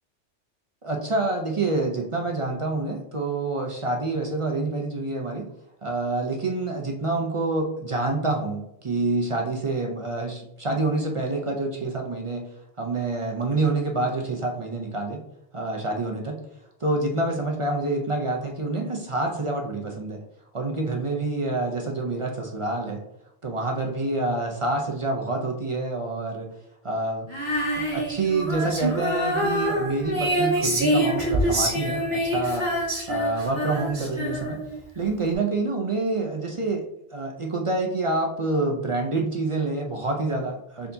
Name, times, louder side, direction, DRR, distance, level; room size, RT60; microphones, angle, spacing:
voice 1, 0.8-5.5 5.8-12.5 12.8-15.2 15.5-16.4 16.8-20.2 20.5-23.0 23.4-26.5 26.8-27.3 27.7-32.7 33.1-34.6 35.0-36.8 37.1-40.9, right 2 dB, 40° right, 1 dB, 0.5 m, -27 dB
Female singing, 27.3-34.8, equal, 65° right, 1.9 m, -26 dB
4.5 x 3.8 x 2.7 m, 0.83 s
omnidirectional pair, 1.2 m